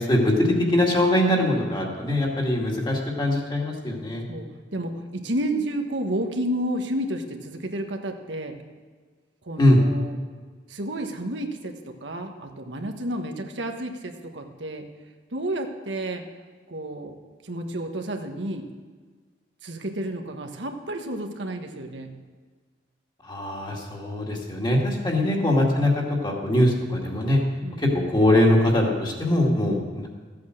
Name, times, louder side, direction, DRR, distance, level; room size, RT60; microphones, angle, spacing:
voice 1, 0.0-4.2 9.6-9.8 23.2-27.4 27.8-30.1, left 1 dB, 25° left, -1 dB, 2.2 m, -22 dB
voice 2, 4.3-8.6 9.4-10.2 10.7-14.9 15.3-16.2 16.7-17.1 17.4-18.7 19.6-22.1 25.1-25.3 25.8-26.0 27.6-27.8 29.7-29.9, right 1 dB, 85° right, 4 dB, 1.3 m, -31 dB
14.5 x 8.3 x 6.5 m, 1.5 s
head